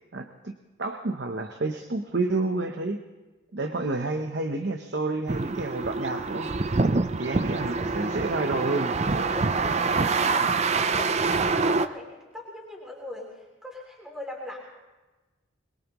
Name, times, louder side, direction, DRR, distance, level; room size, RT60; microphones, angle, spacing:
voice 1, 0.1-0.5 0.8-3.0 3.5-6.5 7.2-9.3, right 2 dB, 55° right, 6 dB, 0.8 m, -29 dB
sound 1, 5.3-11.9, right 4 dB, 35° right, 0.5 m, -25 dB
voice 2, 7.2-7.9 9.3-14.6, left 1 dB, 5° right, -3 dB, 3.2 m, -41 dB
22.5 x 21.0 x 3.0 m, 1.2 s
head